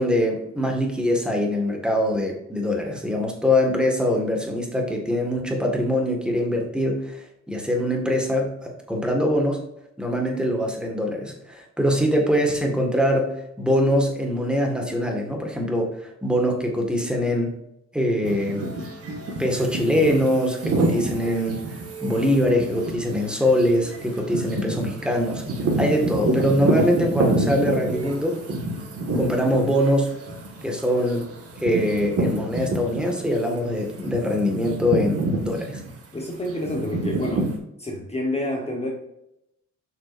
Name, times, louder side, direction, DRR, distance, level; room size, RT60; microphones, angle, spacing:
voice 1, 0.0-9.6 10.0-13.3 13.6-17.5 17.9-18.7 19.4-25.4 25.8-28.4 29.2-30.2 30.6-31.2 31.6-35.8, equal, 5° right, 1 dB, 1.9 m, -23 dB
sound 1, 18.2-33.4 33.7-37.6, right 2 dB, 50° right, 1.9 m, -28 dB
voice 2, 36.1-37.5 37.8-38.9, left 1 dB, 20° left, 0 dB, 1.3 m, -28 dB
7.5 x 6.0 x 2.7 m, 0.83 s
cardioid pair, 90°, 30 cm